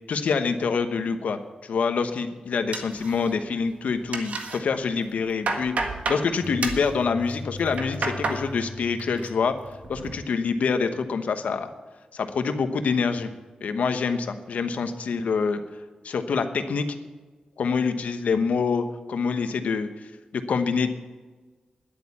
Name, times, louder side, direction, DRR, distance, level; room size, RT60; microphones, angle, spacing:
voice 1, 0.1-5.7 6.1-9.5 9.9-11.7 12.1-13.3 13.6-15.6 16.0-16.9 17.6-19.9 20.3-21.0, left 5 dB, 80° left, 8 dB, 1.1 m, -26 dB
sound 1, 2.7-3.6 3.9-4.6 5.0-6.3 6.6-6.9 7.5-8.4 8.8-9.3 9.7-10.1, right 3 dB, 70° right, 1.6 m, -30 dB
sound 2, 6.4-10.6, left 3 dB, 5° left, 1.6 m, -40 dB
11.0 x 8.5 x 8.5 m, 1.3 s
wide cardioid pair, 135°, 2 cm